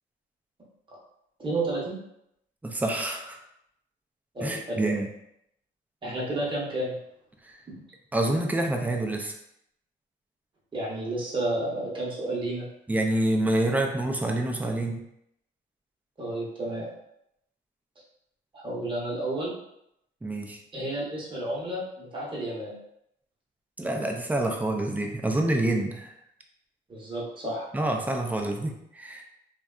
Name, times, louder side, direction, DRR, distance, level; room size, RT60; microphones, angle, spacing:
voice 1, 1.4-2.0 4.3-5.0 6.0-7.0 7.7-7.8 10.7-12.7 16.2-16.9 18.5-19.5 20.7-22.7 26.9-27.7, right 1 dB, 25° right, -5 dB, 0.9 m, -31 dB
voice 2, 2.6-3.4 4.4-5.1 7.4-7.6 8.1-9.3 12.9-15.0 20.2-20.6 23.8-26.2 27.7-29.2, right 1 dB, 10° right, 2 dB, 0.4 m, -27 dB
2.7 x 2.2 x 2.3 m, 0.78 s
cardioid pair, 90°, 20 cm